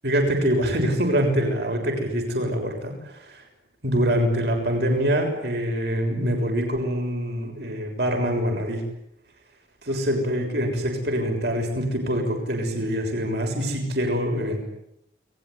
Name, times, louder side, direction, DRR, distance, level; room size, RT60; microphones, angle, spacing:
voice 1, 0.0-3.4 3.8-8.8 9.8-14.6, equal, 70° right, 3 dB, 6.7 m, -24 dB
29.5 x 20.5 x 9.8 m, 0.81 s
head